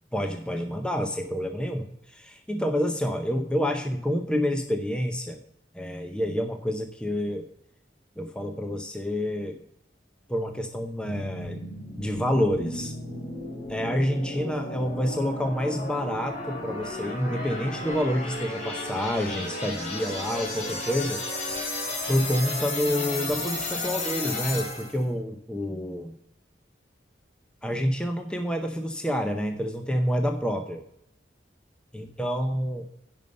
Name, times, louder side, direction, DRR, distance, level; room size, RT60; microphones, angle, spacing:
voice 1, 0.1-5.4 5.7-7.5 8.2-9.6 10.3-11.6 12.0-12.9 13.7-21.2 22.1-26.1 27.6-30.8 31.9-32.9, equal, 5° left, 5 dB, 0.7 m, -28 dB
sound 1, 11.0-25.0, left 2 dB, 40° left, 2.7 m, -34 dB
10.5 x 5.5 x 6.5 m, 0.75 s
head